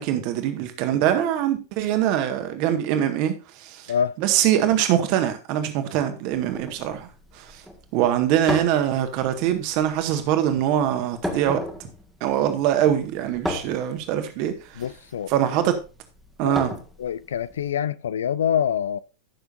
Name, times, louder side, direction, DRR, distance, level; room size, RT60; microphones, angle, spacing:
voice 1, 0.0-3.9 4.2-7.1 7.3-7.6 7.9-11.6 12.2-14.8 15.3-15.8 16.4-16.8, right 11 dB, 45° right, 1.7 m, -23 dB
sound 1, 6.3-17.7, left 1 dB, ahead, 1.8 m, -36 dB
voice 2, 14.8-15.5 16.4-16.6 17.0-19.0, left 8 dB, 65° left, 0.4 m, -25 dB
14.5 x 6.8 x 2.6 m
figure-of-eight pair, 90°, 0 cm